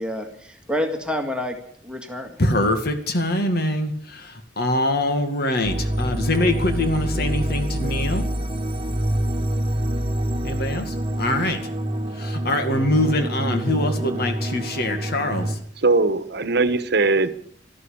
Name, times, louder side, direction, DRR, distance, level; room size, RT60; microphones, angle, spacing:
voice 1, 0.0-1.6 1.8-2.4, left 1 dB, 5° right, 4 dB, 1.9 m, -28 dB
voice 2, 2.4-8.2 10.4-11.6 12.2-15.6, left 1 dB, 55° left, 6 dB, 2.1 m, -24 dB
sound 1, 5.6-15.6, right 1 dB, 30° right, 1.2 m, -26 dB
voice 3, 15.8-17.3, right 3 dB, 60° right, 12 dB, 1.2 m, -20 dB
13.0 x 12.5 x 8.6 m, 0.62 s
head